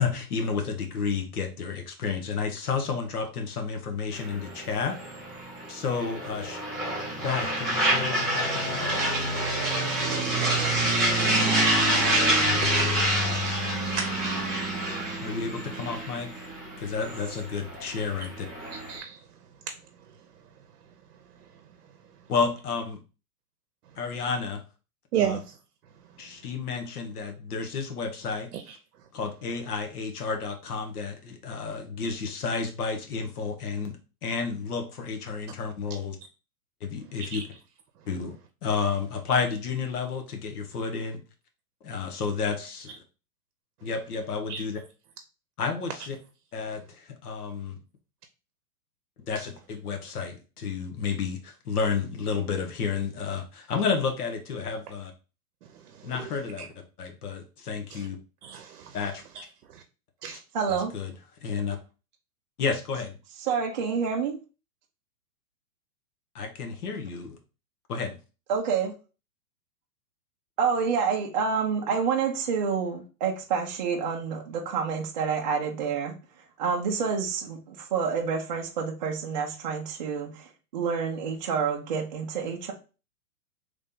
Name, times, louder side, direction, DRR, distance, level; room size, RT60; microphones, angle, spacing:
voice 1, 0.0-5.0 5.7-6.6 7.2-8.9 12.3-12.7 15.2-16.4 16.8-18.5 22.3-23.0 24.0-24.6 25.2-25.4 26.2-28.5 29.1-34.0 34.2-36.2 36.9-37.4 38.1-38.4 38.6-41.2 41.8-42.9 43.8-44.8 45.6-46.1 46.5-47.8 49.3-55.1 56.0-56.7 57.0-58.2 58.9-59.2 60.7-61.1 61.4-61.8 62.6-63.2 66.3-67.4 67.9-68.1, left 5 dB, 75° left, 1.1 m, -31 dB
sound 1, 4.1-19.0, right 1 dB, ahead, 0.8 m, -27 dB
voice 2, 12.6-13.0 13.9-14.7 15.1-15.2 18.7-22.3 25.1-25.6 26.0-26.2 28.5-28.8 37.2-37.5 44.5-44.6 49.4-49.5 55.6-56.3 56.6-56.7 57.9-58.1 58.4-59.0 59.3-59.4 59.7-59.8 60.2-60.4, right 9 dB, 75° right, 0.7 m, -36 dB
voice 3, 60.5-61.0 63.4-64.4 68.5-68.9 70.6-82.7, right 6 dB, 30° right, 0.4 m, -28 dB
3.3 x 2.7 x 3.5 m
hypercardioid pair, 155°, 46 cm